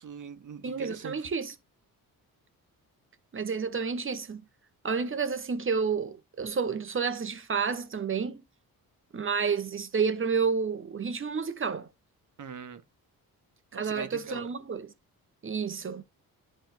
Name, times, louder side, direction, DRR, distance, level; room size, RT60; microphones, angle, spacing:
voice 1, 0.0-1.3 12.4-12.8 13.7-14.5, right 6 dB, 55° right, 1.5 m, -41 dB
voice 2, 0.6-1.5 3.3-4.4 4.8-8.4 9.1-11.9 13.7-14.9 15.4-16.0, right 5 dB, 35° right, 1.4 m, -30 dB
11.0 x 3.7 x 4.1 m
cardioid pair, 95°, 35 cm